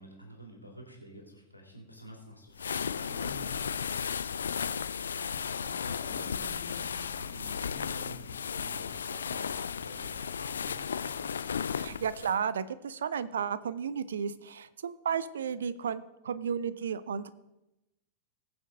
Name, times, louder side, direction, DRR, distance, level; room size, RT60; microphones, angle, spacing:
voice 1, 0.0-4.1 4.4-9.5 9.8-11.4, equal, 85° left, 0 dB, 2.9 m, -49 dB
sound 1, 2.5-12.4, left 7 dB, 70° left, 0.4 m, -35 dB
voice 2, 11.8-17.3, right 7 dB, 65° right, 16 dB, 0.6 m, -33 dB
20.5 x 7.0 x 3.8 m, 0.94 s
figure-of-eight pair, 90°, 0 cm